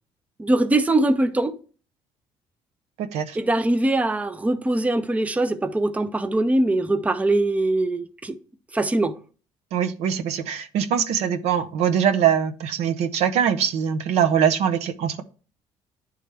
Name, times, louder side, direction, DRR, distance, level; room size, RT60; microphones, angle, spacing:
voice 1, 0.4-1.5 3.3-8.3 8.7-9.1, right 2 dB, 15° right, 0.5 m, -22 dB
voice 2, 9.7-15.2, right 8 dB, 80° right, 0.6 m, -22 dB
10.0 x 3.4 x 3.3 m
cardioid pair, 95°, 11 cm